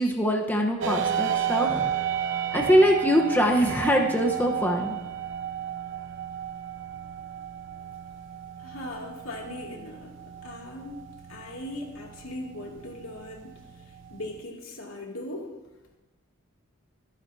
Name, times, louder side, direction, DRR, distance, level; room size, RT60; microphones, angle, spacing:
voice 1, 0.0-1.9 2.5-4.9, equal, 10° left, 1 dB, 1.0 m, -23 dB
sound 1, 0.8-14.4, right 8 dB, 60° right, 0.6 m, -33 dB
voice 2, 8.6-11.0 11.3-13.6 14.1-15.5, left 1 dB, 90° left, -1 dB, 2.6 m, -39 dB
23.5 x 9.5 x 2.8 m, 1.0 s
head